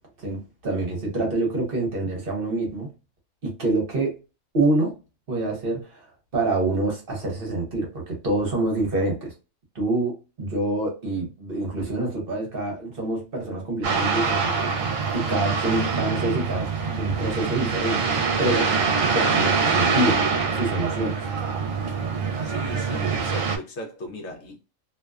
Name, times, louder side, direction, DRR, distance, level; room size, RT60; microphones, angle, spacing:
voice 1, 0.2-2.9 3.4-4.1 4.5-4.9 5.3-6.1 6.3-9.3 9.7-18.7 19.0-20.2 20.5-21.2, right 2 dB, 45° right, 1.1 m, -26 dB
sound 1, 13.8-23.6, right 5 dB, 75° right, 1.0 m, -24 dB
voice 2, 22.4-24.6, equal, 65° left, 0.8 m, -37 dB
2.6 x 2.2 x 2.3 m
omnidirectional pair, 1.4 m